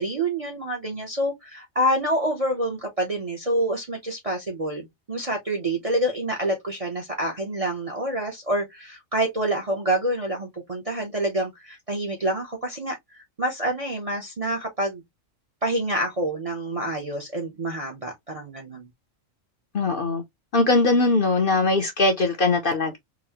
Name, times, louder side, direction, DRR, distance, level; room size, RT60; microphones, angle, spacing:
voice 1, 0.0-15.0 15.6-18.9, right 1 dB, 35° right, 0.6 m, -27 dB
voice 2, 19.7-20.2 20.5-23.0, left 3 dB, 50° left, 0.7 m, -21 dB
4.0 x 2.1 x 2.8 m
omnidirectional pair, 1.4 m